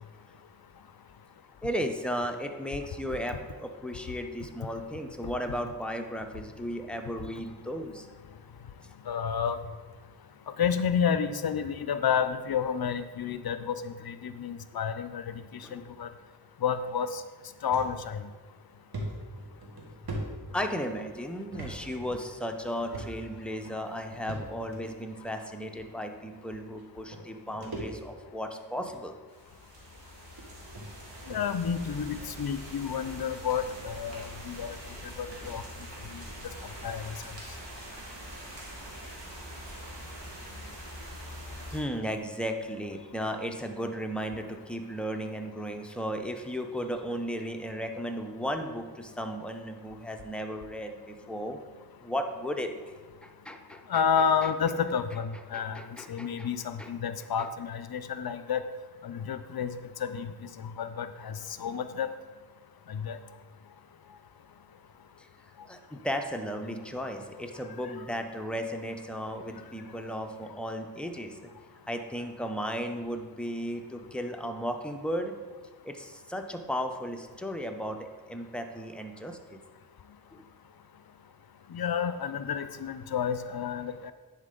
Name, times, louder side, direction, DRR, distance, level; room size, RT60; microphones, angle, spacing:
voice 1, 1.6-8.1 15.6-15.9 20.5-29.1 35.4-35.6 39.0-39.1 41.7-51.6 52.0-52.7 53.2-54.0 54.4-54.5 55.3-56.5 56.8-56.9 57.4-57.5 65.2-65.3 65.7-71.5 71.9-75.3 75.8-79.6 80.3-80.4, equal, ahead, 4 dB, 0.7 m, -35 dB
voice 2, 9.1-9.6 10.6-15.3 15.7-16.1 16.6-17.2 17.6-18.3 31.3-34.7 35.2-35.6 36.1-36.2 36.8-37.0 53.9-55.8 56.1-58.6 59.0-59.7 60.0-60.3 60.6-62.1 62.9-63.2 66.6-66.8 81.7-84.1, left 7 dB, 60° left, 11 dB, 0.5 m, -30 dB
sound 1, 17.7-17.9 18.3-18.4 18.9-21.0 21.5-21.7 22.0-22.2 22.9-23.4 24.3-24.8 25.7-25.8 26.8-26.9 27.1-28.3 28.7-29.0 29.8-29.9 30.4-30.5 30.7-30.9 31.3-31.5, right 1 dB, 60° right, 1.5 m, -39 dB
sound 2, 29.3-41.8, equal, 80° right, 1.9 m, -43 dB
10.0 x 4.3 x 3.8 m, 1.4 s
cardioid pair, 45°, 42 cm